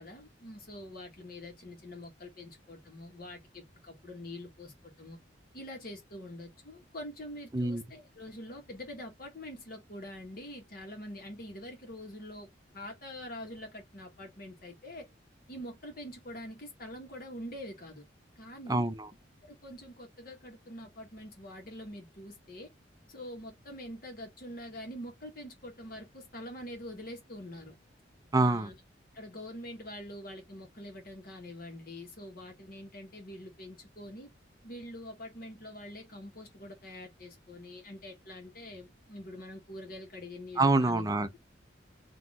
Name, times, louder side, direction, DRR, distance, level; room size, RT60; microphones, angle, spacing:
voice 1, 0.0-5.2 5.5-12.5 12.7-15.1 15.5-18.1 18.4-18.9 19.4-22.7 23.1-27.8 28.3-28.7 29.1-34.3 34.6-41.1, left 1 dB, 50° left, 1.5 m, -45 dB
voice 2, 18.7-19.1 28.3-28.7 40.6-41.4, right 2 dB, 20° right, 0.5 m, -26 dB
3.8 x 2.8 x 3.6 m
head